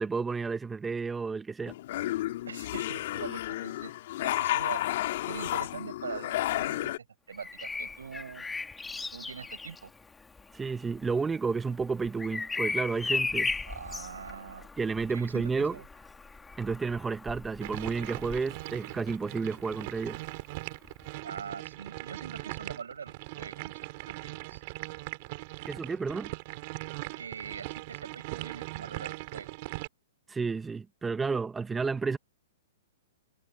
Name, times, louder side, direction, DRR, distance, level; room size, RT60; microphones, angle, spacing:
voice 1, 0.0-1.7 10.5-13.5 14.8-15.8 16.6-20.2 25.7-26.3 30.3-32.2, right 4 dB, 10° right, 1.0 m, -31 dB
sound 1, 1.7-7.0, left 15 dB, 55° left, 2.3 m, -32 dB
voice 2, 2.5-3.9 4.2-4.8 5.3-8.4 9.1-9.9 13.7-14.7 15.1-15.8 21.1-23.8 24.1-24.6 27.2-29.6, right 6 dB, 85° right, 4.7 m, -43 dB
Bird vocalization bird call bird song, 7.3-19.1 20.8-21.0, left 4 dB, 10° left, 2.6 m, -37 dB
sound 2, 17.6-29.9, right 24 dB, 45° right, 5.4 m, -40 dB
hypercardioid pair, 135°, 0 cm